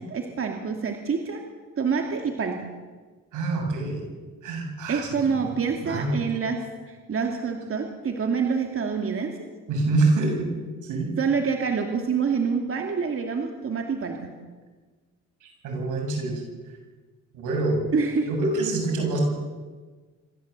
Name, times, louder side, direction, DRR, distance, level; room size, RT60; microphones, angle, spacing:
voice 1, 0.1-1.4 1.8-2.6 4.9-6.6 6.9-9.4 11.2-14.3 17.9-18.3, right 5 dB, 45° right, 3 dB, 2.5 m, -26 dB
voice 2, 3.3-4.0 4.4-5.1 5.8-6.2 9.7-10.5 10.8-11.1 15.4-16.4 17.3-17.8 18.3-19.2, right 2 dB, 85° right, 1 dB, 7.4 m, -25 dB
26.0 x 14.5 x 8.2 m, 1.4 s
cardioid pair, 90°, 30 cm